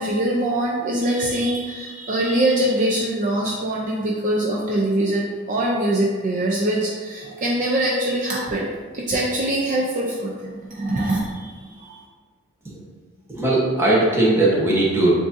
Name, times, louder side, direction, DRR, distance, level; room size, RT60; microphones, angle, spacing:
voice 1, 0.0-8.7 8.9-12.0, right 1 dB, 40° right, -3 dB, 0.5 m, -23 dB
voice 2, 13.3-15.1, right 2 dB, 15° right, -5 dB, 0.9 m, -19 dB
7.2 x 2.6 x 2.6 m, 1.5 s
head